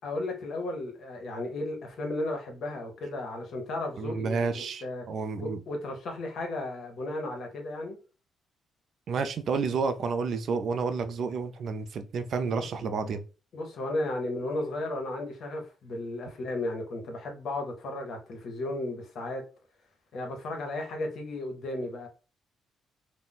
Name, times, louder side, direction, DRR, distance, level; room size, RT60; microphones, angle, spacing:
voice 1, 0.0-5.0 5.4-8.0 12.6-12.7 13.5-19.4 20.1-22.1, left 2 dB, 65° left, 0.9 m, -34 dB
voice 2, 4.0-5.6 9.1-13.2, right 5 dB, 60° right, 0.4 m, -30 dB
2.4 x 2.1 x 3.7 m
cardioid pair, 90°, 0 cm